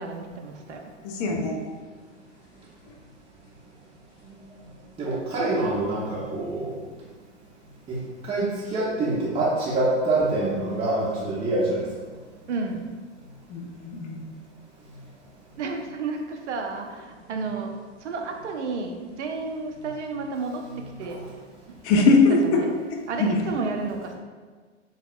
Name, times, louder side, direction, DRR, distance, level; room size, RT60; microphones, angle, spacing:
voice 1, 0.0-0.9 12.5-12.9 15.6-17.7 18.0-20.6 21.0-21.2 21.7-22.0 22.4-22.7 23.1-24.1, right 4 dB, 70° right, 3 dB, 0.5 m, -32 dB
voice 2, 1.0-1.6 13.5-14.2 21.8-22.6 23.2-23.3, left 3 dB, 35° left, 1 dB, 0.4 m, -21 dB
voice 3, 5.0-6.8 7.9-11.8 21.0-21.2, right 2 dB, 15° right, -7 dB, 0.5 m, -25 dB
3.4 x 2.0 x 2.4 m, 1.5 s
figure-of-eight pair, 90°, 36 cm